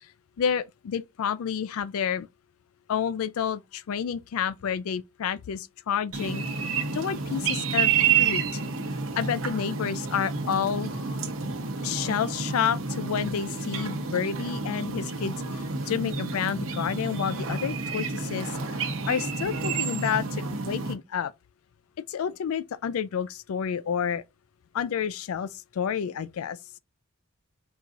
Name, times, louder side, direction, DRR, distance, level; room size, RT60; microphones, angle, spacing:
voice 1, 0.4-2.3 2.9-6.4 6.9-8.6 9.2-10.9 11.8-18.8 19.1-21.3 22.1-24.2 24.7-26.6, left 7 dB, 75° left, 0.4 m, -30 dB
sound 1, 6.1-20.9, right 6 dB, 70° right, 0.9 m, -29 dB
4.6 x 3.8 x 2.5 m
head